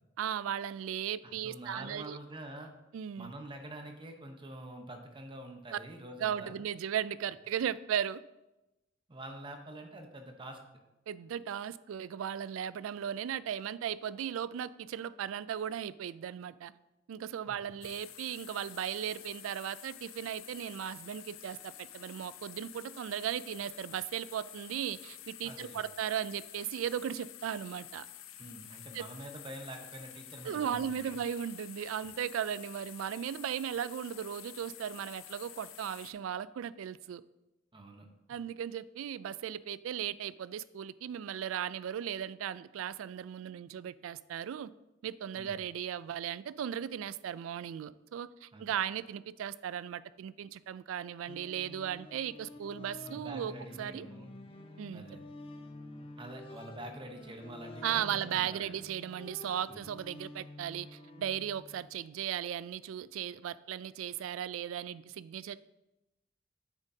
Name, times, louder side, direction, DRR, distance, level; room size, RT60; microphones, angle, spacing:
voice 1, 0.2-2.2 2.9-3.3 5.7-5.8 6.2-8.2 11.1-16.7 17.1-28.1 28.9-29.0 30.4-37.2 38.3-44.7 45.0-53.5 53.8-54.0 54.8-55.0 57.8-65.6, right 9 dB, 85° right, 0.3 m, -37 dB
voice 2, 1.2-2.7 3.2-6.6 9.1-10.6 17.5-17.6 25.4-25.9 28.4-31.2 37.7-38.1 45.4-45.6 48.5-48.6 53.0-54.3 54.9-55.2 56.2-58.8 59.7-59.9, right 1 dB, 25° right, 0.9 m, -46 dB
sound 1, 17.8-36.1, left 12 dB, 80° left, 0.5 m, -50 dB
sound 2, 51.3-61.9, left 1 dB, 30° left, 0.6 m, -49 dB
8.9 x 7.2 x 2.8 m
head